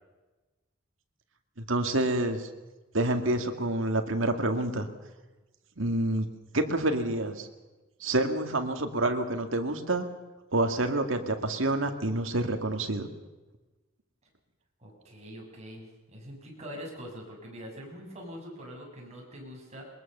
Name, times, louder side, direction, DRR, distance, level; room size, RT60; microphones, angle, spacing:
voice 1, 1.7-2.5 2.9-4.9 5.8-6.3 6.5-7.5 8.0-10.1 10.5-13.1, right 2 dB, 70° right, 6 dB, 2.1 m, -28 dB
voice 2, 14.8-19.8, equal, 35° right, -1 dB, 7.1 m, -44 dB
22.5 x 20.5 x 6.8 m, 1.2 s
head